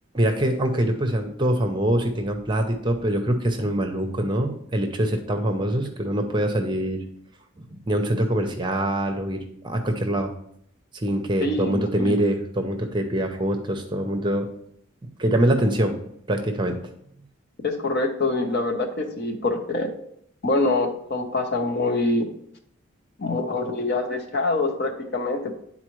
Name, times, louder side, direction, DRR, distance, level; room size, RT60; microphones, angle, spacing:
voice 1, 0.1-7.0 7.6-10.3 10.9-14.5 15.0-16.0 16.3-16.8, right 1 dB, 20° right, 5 dB, 0.7 m, -24 dB
voice 2, 11.4-12.1 17.6-19.9 20.4-22.3 23.2-25.5, left 2 dB, 50° left, 2 dB, 1.0 m, -25 dB
10.0 x 4.1 x 3.1 m, 0.69 s
head